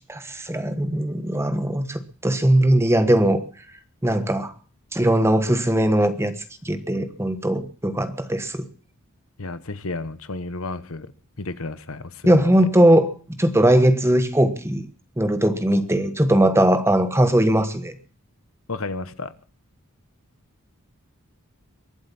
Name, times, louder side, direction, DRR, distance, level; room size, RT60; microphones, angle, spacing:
voice 1, 0.0-3.4 4.0-4.5 4.9-6.3 6.6-8.6 12.2-13.1 13.4-14.9 15.2-17.9, right 1 dB, 10° right, 1.2 m, -19 dB
voice 2, 9.4-11.1 11.4-12.7 18.7-19.3, left 3 dB, 65° left, 1.2 m, -32 dB
23.0 x 7.9 x 7.2 m
head